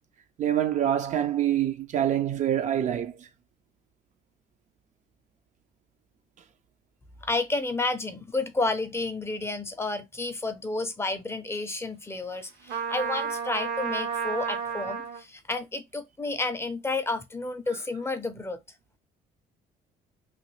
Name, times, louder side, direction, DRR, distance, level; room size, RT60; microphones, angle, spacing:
voice 1, 0.4-3.3, right 10 dB, 45° right, 0.4 m, -26 dB
voice 2, 7.2-18.6, left 3 dB, 15° left, 0.5 m, -31 dB
Trumpet, 12.7-15.2, right 6 dB, 70° right, 0.7 m, -31 dB
3.0 x 2.3 x 3.1 m
cardioid pair, 110°, 17 cm